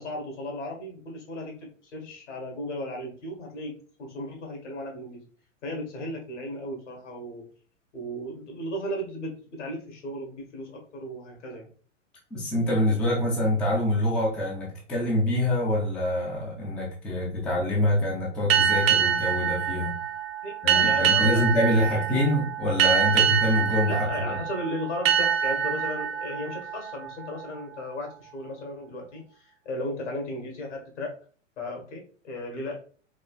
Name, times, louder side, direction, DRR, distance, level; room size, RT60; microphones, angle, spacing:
voice 1, 0.0-5.2 5.6-7.5 7.9-11.7 20.4-21.4 21.9-22.0 23.9-31.1 31.6-32.9, left 1 dB, 65° left, 1 dB, 1.5 m, -35 dB
voice 2, 12.3-20.0 20.6-24.3, left 1 dB, 5° left, -3 dB, 0.3 m, -25 dB
sound 1, 18.5-27.8, right 8 dB, 50° right, 0.6 m, -25 dB
4.0 x 3.0 x 2.4 m, 0.43 s
figure-of-eight pair, 100°, 38 cm